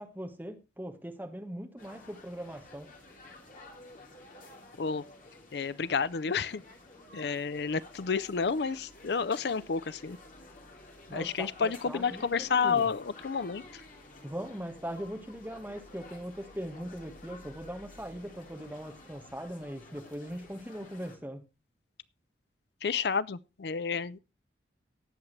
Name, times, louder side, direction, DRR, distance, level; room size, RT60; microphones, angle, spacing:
voice 1, 0.0-2.9 11.1-12.8 14.2-21.4, equal, 10° right, 1.3 m, -40 dB
sound 1, 1.8-21.2, left 2 dB, 45° left, 2.9 m, -52 dB
voice 2, 5.5-6.6 7.1-10.2 11.1-13.8 22.8-24.2, left 5 dB, 65° left, 0.5 m, -30 dB
18.5 x 7.3 x 3.2 m
head